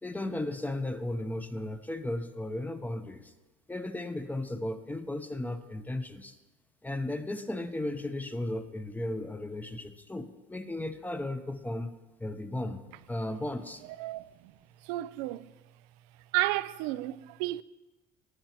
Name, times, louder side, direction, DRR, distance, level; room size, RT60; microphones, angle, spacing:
voice 1, 0.0-3.3 3.7-6.4 6.8-12.8 13.1-13.8, left 1 dB, 10° left, 0.8 m, -35 dB
voice 2, 14.0-14.5 14.8-15.5 16.3-17.6, right 17 dB, 90° right, 0.4 m, -32 dB
19.0 x 8.8 x 3.0 m
cardioid pair, 110°, 19 cm